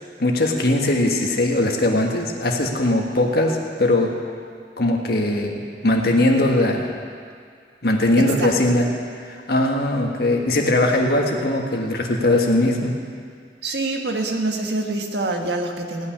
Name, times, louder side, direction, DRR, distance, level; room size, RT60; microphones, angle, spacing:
voice 1, 0.2-4.2 4.8-7.0 7.8-8.9 9.2-12.9, left 1 dB, 60° left, 1 dB, 1.6 m, -20 dB
voice 2, 8.2-8.6 13.6-16.1, right 2 dB, 75° right, 3 dB, 1.4 m, -25 dB
17.0 x 6.1 x 10.0 m, 2.1 s
head